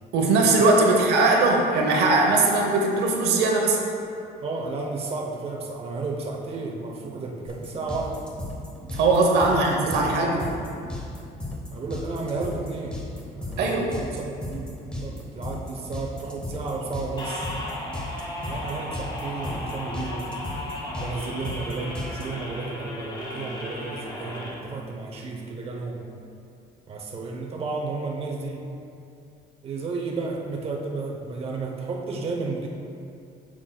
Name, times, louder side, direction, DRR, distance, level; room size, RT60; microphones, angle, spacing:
voice 1, 0.1-3.8 8.9-10.3 13.6-13.9, right 3 dB, 75° right, 0 dB, 1.0 m, -20 dB
voice 2, 4.4-8.3 9.5-10.5 11.7-13.0 13.3-17.5 18.5-20.4 21.0-26.0 26.9-28.7 29.6-32.7, right 3 dB, 35° right, 0 dB, 0.8 m, -32 dB
sound 1, 7.5-22.2, left 2 dB, 5° left, 1.1 m, -35 dB
sound 2, 17.2-24.5, left 1 dB, 25° left, 1.5 m, -35 dB
8.8 x 6.0 x 2.3 m, 2.5 s
cardioid pair, 110°, 17 cm